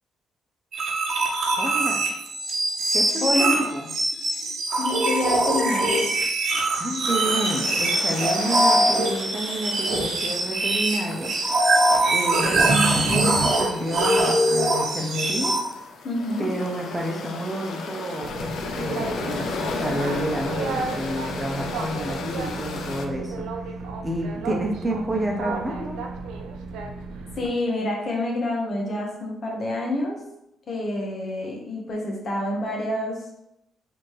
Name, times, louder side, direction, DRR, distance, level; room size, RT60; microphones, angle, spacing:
sound 1, 0.7-15.6, right 2 dB, 60° right, 1.0 m, -22 dB
voice 1, 1.6-2.0 2.9-3.3 3.6-3.9 6.7-11.3 12.1-15.6 16.4-23.5 24.0-26.0, right 1 dB, 20° right, 0 dB, 1.0 m, -30 dB
voice 2, 3.2-3.5 4.8-6.1 16.0-16.6 27.4-30.2 30.7-33.2, left 1 dB, 50° left, -1 dB, 1.3 m, -27 dB
sound 2, 7.1-23.1, left 4 dB, 75° left, 0.5 m, -35 dB
Boat Water vehicle, 18.2-27.5, right 4 dB, 85° right, 0.4 m, -34 dB
4.1 x 2.9 x 3.3 m, 0.82 s
cardioid pair, 75°, 0 cm